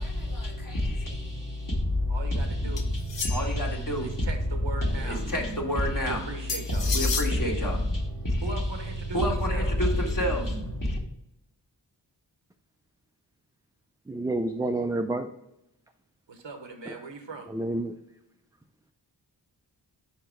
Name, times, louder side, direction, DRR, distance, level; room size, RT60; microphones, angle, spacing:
voice 1, 0.0-4.3 4.8-11.0, left 1 dB, 45° left, 1.6 m, -28 dB
voice 2, 2.1-2.9 4.0-5.2 6.0-6.9 8.4-9.8 16.3-17.5, right 3 dB, 90° right, 1.1 m, -39 dB
sound 1, 2.8-3.7 6.5-7.3, left 5 dB, 70° left, 0.8 m, -32 dB
voice 3, 14.1-15.3 16.9-17.0 17.5-18.0, right 2 dB, 10° right, 0.4 m, -29 dB
5.2 x 4.6 x 4.5 m
wide cardioid pair, 45°, 44 cm